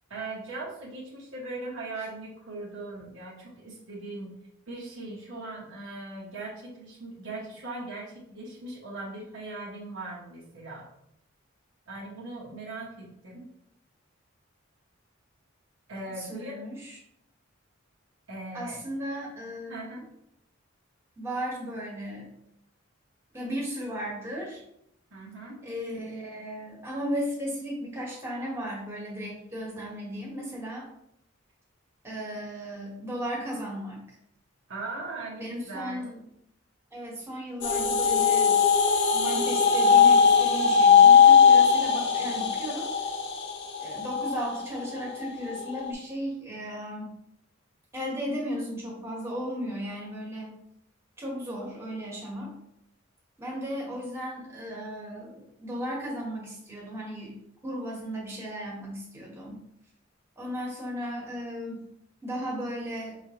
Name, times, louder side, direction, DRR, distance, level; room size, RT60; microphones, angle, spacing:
voice 1, 0.1-4.3 4.7-10.9 11.9-13.5 15.9-16.6 18.3-18.8 19.7-20.1 25.1-25.6 34.7-36.1, right 2 dB, 80° right, -5 dB, 1.0 m, -39 dB
voice 2, 16.2-16.9 18.5-20.0 21.2-22.3 23.3-24.6 25.6-30.9 32.0-34.0 35.4-36.2 36.9-38.6 39.1-42.9 43.8-47.1 47.9-50.5 51.2-52.5 53.4-57.4 57.6-59.6 60.4-61.8 62.2-63.2, equal, 15° right, -3 dB, 1.1 m, -35 dB
sound 1, 37.6-45.9, left 6 dB, 60° left, 0.7 m, -20 dB
5.6 x 3.3 x 2.8 m, 0.77 s
head